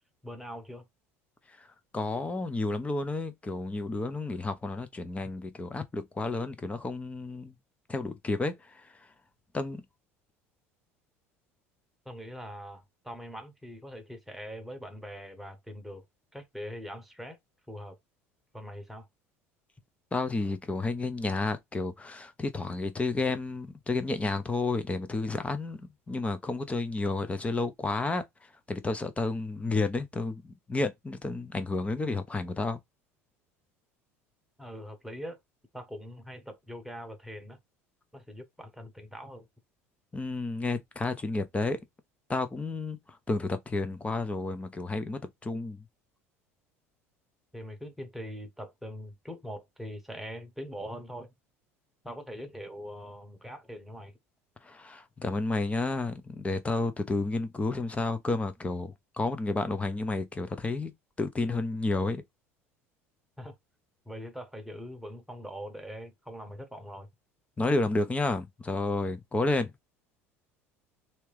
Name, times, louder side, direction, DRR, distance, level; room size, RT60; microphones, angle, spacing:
voice 1, 0.2-0.9 12.0-16.0 16.3-17.4 17.7-18.0 18.5-19.1 34.6-35.4 35.7-37.6 38.1-39.5 47.5-51.3 52.0-54.1 63.4-63.5 64.0-67.1, equal, ahead, 1.2 m, -42 dB
voice 2, 1.9-7.6 7.9-8.9 9.5-9.8 20.1-28.2 28.7-32.8 40.1-41.8 42.3-43.0 43.3-45.8 54.6-60.9 61.2-62.2 67.6-69.7, left 3 dB, 15° left, 0.8 m, -31 dB
3.3 x 2.9 x 3.3 m
figure-of-eight pair, 65°, 8 cm